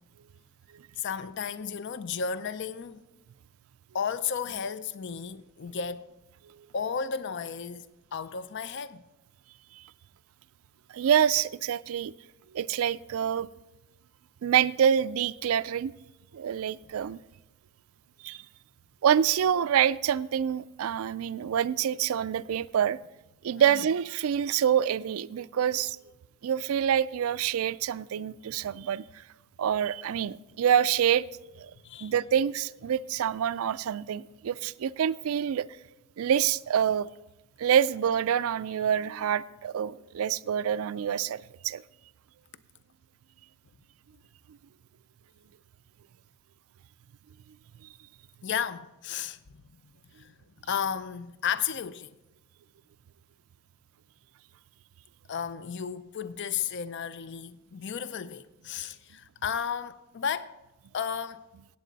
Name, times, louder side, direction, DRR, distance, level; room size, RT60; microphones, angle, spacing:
voice 1, 1.0-3.0 3.9-6.1 6.7-7.9 8.1-9.0 23.7-23.8 31.8-32.1 48.4-49.4 50.2-50.4 50.6-52.2 55.3-60.5 60.9-61.5, left 7 dB, 55° left, 0.5 m, -33 dB
voice 2, 10.9-12.1 12.5-13.5 14.4-15.9 16.3-17.2 18.2-18.4 19.0-23.0 23.4-26.0 26.4-29.0 29.6-31.2 31.6-31.7 32.0-35.7 36.2-37.1 37.6-41.8, right 9 dB, 70° right, 0.3 m, -26 dB
16.5 x 8.3 x 4.0 m
head